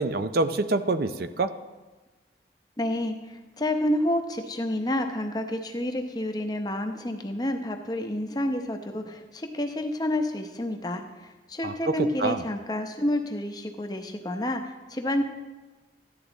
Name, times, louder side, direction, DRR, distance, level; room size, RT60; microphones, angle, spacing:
voice 1, 0.0-1.5 11.6-12.4, right 2 dB, 55° right, 11 dB, 0.5 m, -26 dB
voice 2, 2.8-15.2, left 1 dB, 20° left, 5 dB, 0.8 m, -29 dB
14.0 x 10.5 x 4.0 m, 1.2 s
head